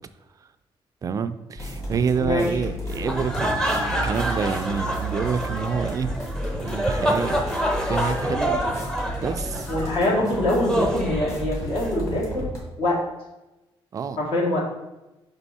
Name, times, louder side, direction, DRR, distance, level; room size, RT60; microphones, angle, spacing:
voice 1, 1.0-6.1 6.6-7.4 7.9-8.6 9.2-9.7 13.9-14.2, right 6 dB, 35° right, 10 dB, 0.3 m, -27 dB
sound 1, 1.6-12.6, equal, 30° left, 1.9 m, -32 dB
voice 2, 2.2-2.6 9.7-12.5 12.8-13.0 14.2-14.6, left 1 dB, 65° left, -3 dB, 1.9 m, -24 dB
sound 2, 2.9-11.9, equal, 5° left, 0.7 m, -27 dB
5.4 x 4.4 x 4.1 m, 0.99 s
cardioid pair, 145°, 10 cm